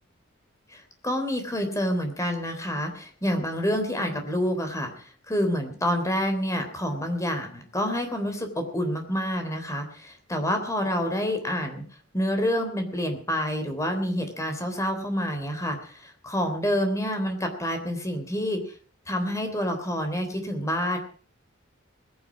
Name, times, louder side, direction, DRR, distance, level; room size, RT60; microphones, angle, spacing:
voice 1, 0.7-11.8 12.1-18.7 19.1-21.0, equal, 15° left, 5 dB, 3.4 m, -28 dB
20.5 x 9.5 x 6.3 m, 0.43 s
head